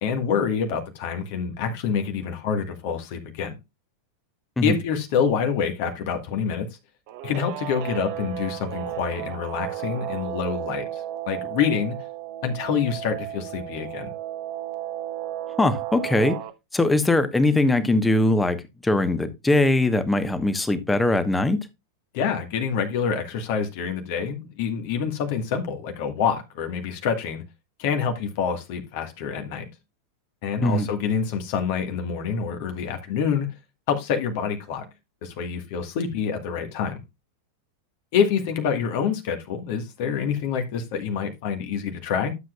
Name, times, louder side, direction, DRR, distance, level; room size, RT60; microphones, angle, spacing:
voice 1, 0.0-3.5 4.6-6.7 7.2-12.0 12.4-14.1 22.1-27.4 27.8-29.6 30.4-33.5 33.9-34.9 35.2-37.0 38.1-42.3, left 7 dB, 50° left, 1.5 m, -26 dB
Guitar, 7.1-16.5, right 13 dB, 45° right, 0.9 m, -34 dB
voice 2, 15.6-16.3 16.7-18.6 18.8-21.6 30.6-30.9, left 2 dB, 10° left, 1.1 m, -21 dB
11.5 x 7.6 x 2.3 m
figure-of-eight pair, 90°, 0 cm